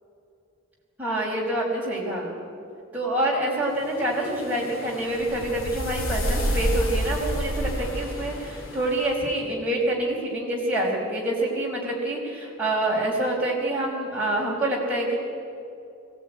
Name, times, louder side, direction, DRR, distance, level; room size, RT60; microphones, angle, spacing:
voice 1, 1.0-2.4 2.9-15.2, right 1 dB, 5° right, -4 dB, 4.9 m, -26 dB
sound 1, 3.8-9.1, equal, 70° left, 2.6 m, -29 dB
21.5 x 17.5 x 9.5 m, 2.6 s
head